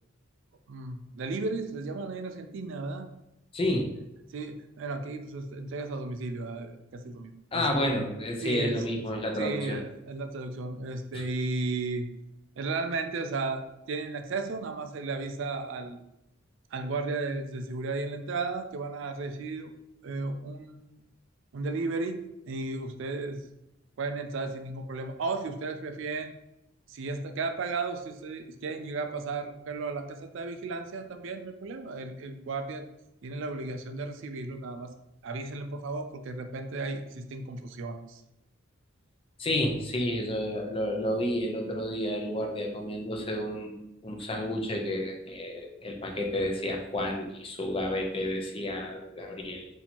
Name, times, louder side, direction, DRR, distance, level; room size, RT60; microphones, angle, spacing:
voice 1, 0.7-3.1 3.7-3.8 4.3-7.9 8.4-8.9 9.3-12.0 12.6-16.0 16.7-19.7 20.0-21.0 21.5-23.5 24.0-26.3 26.9-32.8 33.2-34.9 35.2-38.2 44.2-44.3, right 3 dB, 60° right, 7 dB, 0.4 m, -34 dB
voice 2, 3.5-3.9 7.5-9.8 11.1-11.2 39.4-43.7 44.0-49.7, left 1 dB, 25° left, 2 dB, 0.5 m, -30 dB
2.8 x 2.8 x 4.2 m, 0.86 s
head